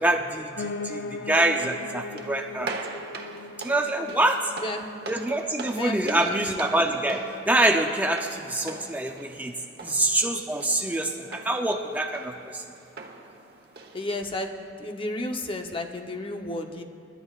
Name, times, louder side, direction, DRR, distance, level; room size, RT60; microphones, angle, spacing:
voice 1, 0.0-2.7 3.6-4.5 5.1-7.2 7.5-9.5 9.8-12.6, right 1 dB, 10° right, 3 dB, 0.5 m, -25 dB
Piano, 0.6-9.7 10.1-11.2 11.5-11.6 11.8-11.9 12.2-12.3 12.8-12.9, left 3 dB, 75° left, 0.5 m, -41 dB
sound 1, 1.4-14.5, right 3 dB, 60° right, 1.1 m, -42 dB
voice 2, 5.7-6.4 13.9-14.5 14.8-16.8, left 1 dB, 30° left, 4 dB, 0.8 m, -32 dB
29.5 x 12.5 x 2.4 m, 3.0 s
head